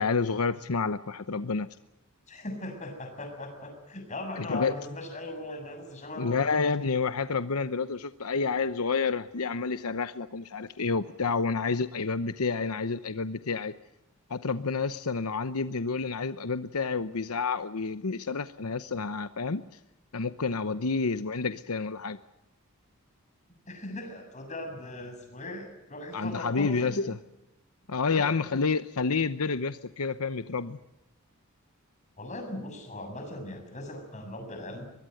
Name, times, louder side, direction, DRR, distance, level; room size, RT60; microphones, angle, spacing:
voice 1, 0.0-1.7 4.4-4.8 6.2-13.7 14.3-19.6 20.1-22.2 26.1-27.2 27.9-30.8, left 4 dB, 85° left, 11 dB, 0.9 m, -29 dB
voice 2, 2.3-6.5 23.7-27.0 28.0-28.3 32.2-34.8, left 1 dB, 35° left, 5 dB, 7.1 m, -39 dB
23.0 x 22.0 x 7.9 m, 0.94 s
head